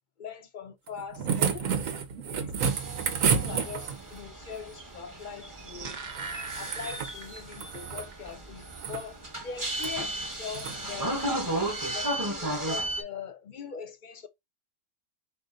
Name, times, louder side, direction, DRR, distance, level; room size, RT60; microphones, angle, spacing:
voice 1, 0.2-1.7 2.3-2.7 3.3-6.0 6.6-11.5 11.9-14.3, left 6 dB, 45° left, 0.7 m, -42 dB
sound 1, 0.9-4.2 6.1-7.1 7.5-8.1 8.6-9.1 9.7-9.9 10.5-10.8 12.1-12.2, right 6 dB, 90° right, 1.2 m, -30 dB
sound 2, 2.6-13.0, right 1 dB, 15° right, 0.9 m, -35 dB
sound 3, 5.4-7.8 8.1-8.2, right 4 dB, 45° right, 0.6 m, -40 dB
5.5 x 2.6 x 3.7 m
omnidirectional pair, 1.4 m